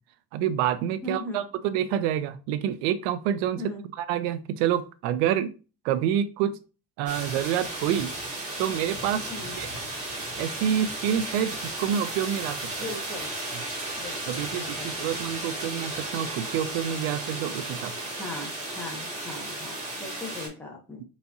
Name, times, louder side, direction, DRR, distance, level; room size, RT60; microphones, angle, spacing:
voice 1, 0.3-3.6 4.0-5.5 5.8-6.6 7.0-8.1 8.6-9.3 9.6-9.7 10.4-12.7 14.3-17.9, right 10 dB, 85° right, 12 dB, 0.6 m, -27 dB
voice 2, 1.0-1.5 3.6-3.8 9.3-9.6 12.8-13.3 13.9-15.1 18.2-21.0, left 2 dB, 5° left, 0 dB, 0.9 m, -39 dB
sound 1, 7.1-20.5, right 2 dB, 25° right, 2.4 m, -34 dB
4.1 x 4.1 x 2.4 m, 0.33 s
cardioid pair, 170°, 29 cm